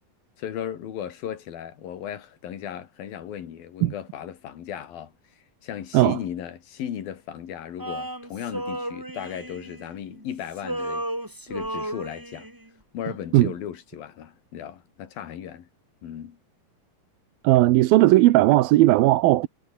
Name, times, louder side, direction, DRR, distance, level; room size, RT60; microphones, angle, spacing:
voice 1, 0.4-5.1 5.6-11.1 11.5-12.5 12.9-15.7 16.0-16.4, left 9 dB, 80° left, 4.1 m, -36 dB
Male singing, 7.8-10.2 10.5-12.7, right 1 dB, 5° right, 2.9 m, -34 dB
voice 2, 17.4-19.5, right 17 dB, 85° right, 2.7 m, -17 dB
omnidirectional pair, 4.1 m